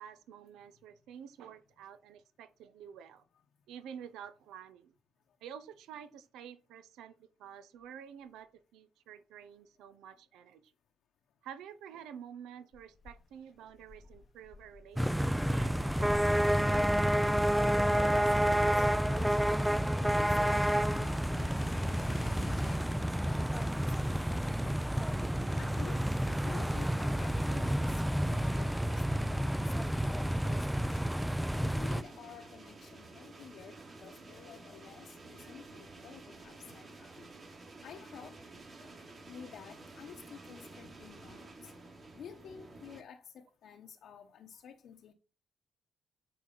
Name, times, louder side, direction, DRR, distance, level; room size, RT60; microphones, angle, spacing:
voice 1, 0.0-3.2 3.7-4.9 5.4-10.7 11.4-16.9, right 8 dB, 85° right, 0.8 m, -50 dB
sound 1, 12.7-22.8, left 4 dB, 40° left, 0.7 m, -52 dB
sound 2, 15.0-32.0, equal, 5° right, 0.4 m, -29 dB
voice 2, 17.8-19.6 20.0-25.0 25.6-31.3 31.6-37.6 37.8-41.7 42.1-45.1, left 8 dB, 70° left, 0.9 m, -52 dB
sound 3, 25.1-43.0, right 2 dB, 45° right, 3.2 m, -51 dB
8.6 x 4.9 x 3.9 m
cardioid pair, 90°, 0 cm